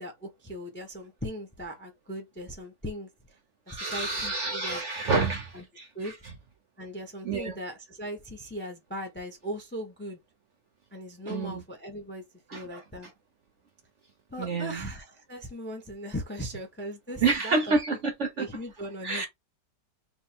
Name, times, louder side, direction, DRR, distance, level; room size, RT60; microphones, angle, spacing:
voice 1, 0.0-3.4 3.7-4.8 5.1-5.2 5.5-5.6 5.9-6.1 6.8-10.2 10.9-12.2 12.5-13.1 14.3-18.0 18.4-19.3, equal, 10° left, 0.5 m, -38 dB
voice 2, 3.7-5.4 5.8-6.1 7.2-7.5 11.3-11.6 12.5-12.8 14.4-14.8 17.2-18.5 19.0-19.3, right 4 dB, 55° right, 0.8 m, -28 dB
3.6 x 2.5 x 4.3 m
omnidirectional pair, 1.9 m